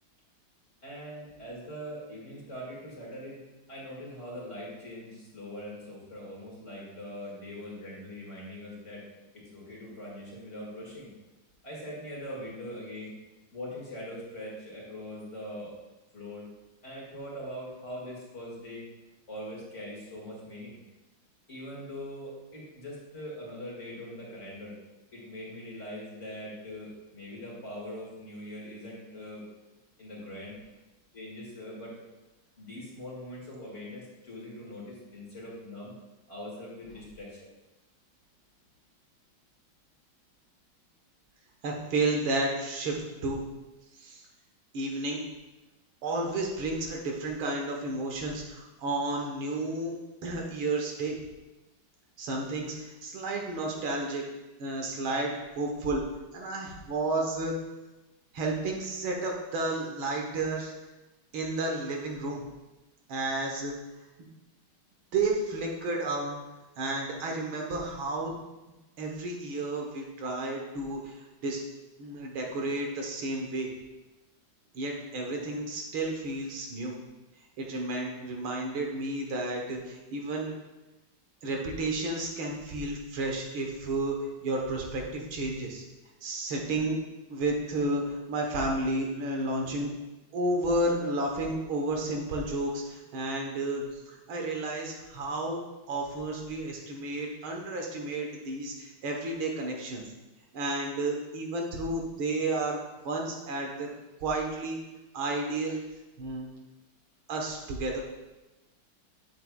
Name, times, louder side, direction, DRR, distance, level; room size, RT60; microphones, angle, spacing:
voice 1, 0.8-3.4 3.7-9.0 9.3-11.1 11.6-13.1 13.5-15.8 16.1-16.5 16.8-18.9 19.3-20.8 21.5-24.7 25.1-29.4 30.0-30.6 31.1-32.0 32.6-35.9 36.3-37.4, equal, 35° left, -5 dB, 2.4 m, -42 dB
voice 2, 41.6-43.4 44.0-44.2 44.7-45.2 46.0-49.9 50.2-51.2 52.2-54.2 54.6-56.0 56.3-57.5 58.3-60.7 61.3-62.4 63.1-63.8 64.2-64.3 65.1-66.4 66.8-68.3 69.0-71.6 72.0-73.7 74.7-77.0 77.6-80.5 81.4-85.8 86.2-87.0 87.3-89.9 90.3-95.6 95.9-100.0 100.5-102.8 103.0-103.9 104.2-104.8 105.1-105.8 106.2-106.5 107.3-108.0, right 2 dB, 85° right, 0 dB, 2.0 m, -32 dB
8.4 x 7.5 x 2.3 m, 1.1 s
omnidirectional pair, 2.2 m